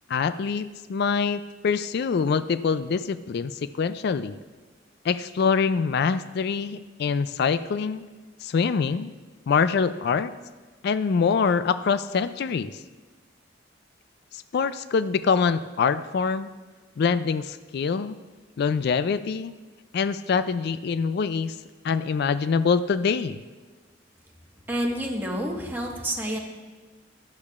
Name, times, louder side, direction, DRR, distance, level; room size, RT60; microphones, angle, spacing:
voice 1, 0.1-4.4 5.0-8.1 8.4-9.1 9.5-10.3 10.8-12.7 14.3-16.5 17.0-18.2 18.6-19.5 19.9-21.5 21.8-23.4, left 5 dB, 60° left, 13 dB, 0.3 m, -24 dB
voice 2, 24.7-26.4, equal, 10° right, -1 dB, 1.4 m, -28 dB
15.0 x 12.0 x 2.4 m, 1.3 s
head